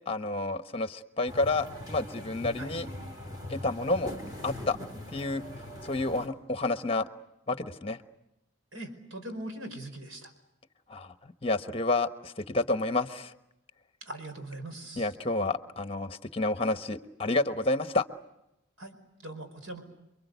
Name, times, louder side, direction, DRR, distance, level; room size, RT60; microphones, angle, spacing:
voice 1, 0.1-2.9 3.5-4.1 4.4-4.8 5.1-5.4 5.8-7.1 7.5-8.0 10.9-13.4 15.0-18.0, left 2 dB, 25° left, 9 dB, 1.1 m, -30 dB
sound 1, 1.3-6.3, left 1 dB, 20° right, 3.9 m, -41 dB
voice 2, 8.7-10.3 14.0-15.1 18.8-19.8, right 1 dB, 85° right, 7 dB, 5.0 m, -41 dB
28.5 x 23.0 x 8.2 m, 0.89 s
head